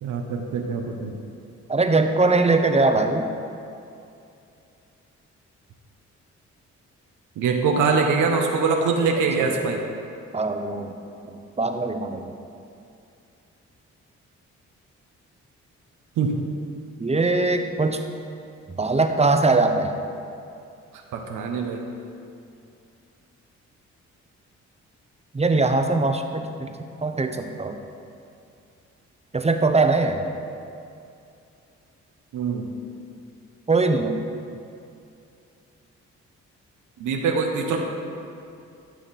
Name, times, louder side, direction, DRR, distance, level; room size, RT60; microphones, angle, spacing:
voice 1, 0.0-1.2 7.4-9.8 16.2-16.3 21.1-21.9 32.3-32.7 37.0-37.8, right 4 dB, 90° right, 2 dB, 1.0 m, -23 dB
voice 2, 1.7-3.3 9.4-9.5 10.3-10.9 11.2-12.3 17.0-18.0 18.8-19.9 25.3-26.7 27.0-27.7 29.3-30.2 33.7-34.1, right 3 dB, 20° right, 6 dB, 0.9 m, -21 dB
12.5 x 6.1 x 4.3 m, 2.6 s
cardioid pair, 65°, 30 cm